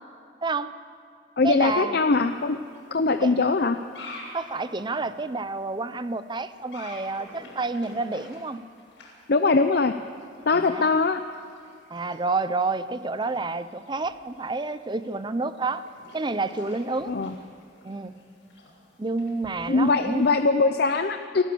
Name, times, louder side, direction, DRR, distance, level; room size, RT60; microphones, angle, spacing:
voice 1, 0.4-0.7 1.4-2.0 3.2-3.3 4.3-8.6 10.5-10.9 11.9-15.8 16.1-17.1 17.8-18.1 19.0-20.3, right 3 dB, 25° right, 13 dB, 0.7 m, -29 dB
voice 2, 1.4-2.6 2.9-3.8 9.3-9.9 10.5-11.2 17.1-17.3 19.7-21.4, left 3 dB, 60° left, 8 dB, 0.7 m, -21 dB
sound 1, 2.1-20.4, left 2 dB, 90° left, 7.1 m, -50 dB
27.0 x 15.0 x 7.0 m, 2.5 s
head